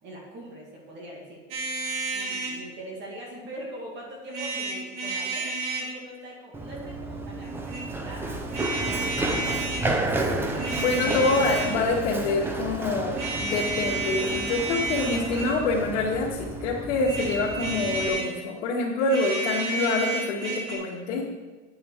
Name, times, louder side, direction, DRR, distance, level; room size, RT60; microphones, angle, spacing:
voice 1, 0.0-1.5 2.1-5.5 5.8-8.4 8.7-9.3 21.1-21.3, right 1 dB, 30° right, -2 dB, 2.2 m, -42 dB
sound 1, 1.5-2.6 4.3-5.9 7.4-7.8 8.5-9.9 10.4-11.8 13.1-15.6 16.9-18.3 19.0-20.7, right 3 dB, 70° right, 3.8 m, -31 dB
Run, 6.5-18.1, right 2 dB, 5° right, 0.5 m, -32 dB
voice 2, 10.7-21.2, left 3 dB, 75° left, -5 dB, 2.1 m, -26 dB
9.5 x 8.6 x 4.8 m, 1.3 s
supercardioid pair, 155°, 36 cm